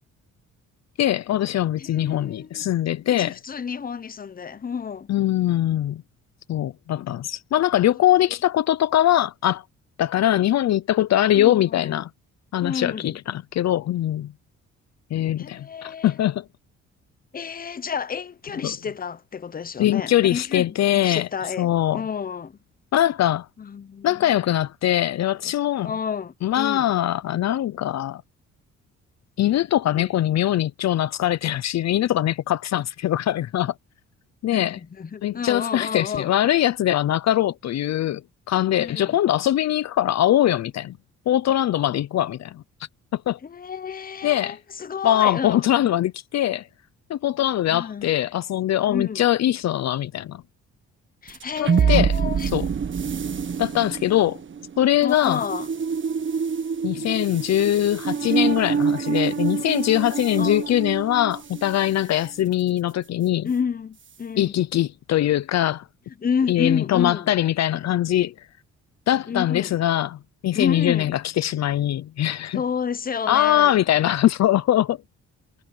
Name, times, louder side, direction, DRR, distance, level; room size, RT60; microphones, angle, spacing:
voice 1, 1.0-3.4 5.1-6.0 6.5-9.6 10.0-12.1 12.5-14.3 15.1-16.4 18.6-18.7 19.8-21.3 21.6-22.0 22.9-23.5 24.0-25.9 26.4-28.2 29.4-33.7 34.4-34.8 35.2-38.2 38.5-41.0 41.3-42.6 43.1-43.4 44.2-44.6 45.0-46.7 47.1-50.4 51.6-52.1 52.5-52.7 53.6-54.4 54.8-55.4 56.8-63.5 64.4-65.8 66.5-68.3 69.1-72.6 73.3-75.0, left 12 dB, 60° left, 0.7 m, -22 dB
voice 2, 1.8-2.6 3.1-5.1 11.4-12.0 12.6-13.2 15.4-16.2 17.3-22.6 23.6-24.4 25.8-26.9 29.9-30.1 34.5-36.3 38.8-39.2 43.4-45.7 47.7-48.1 48.9-49.3 51.2-52.5 55.0-55.7 60.4-60.7 63.4-64.6 66.2-67.3 69.3-69.8 70.5-71.2 72.5-73.8, left 6 dB, 30° left, 0.9 m, -30 dB
sound 1, 51.3-61.8, right 6 dB, 40° right, 1.6 m, -26 dB
cardioid pair, 90°, 30 cm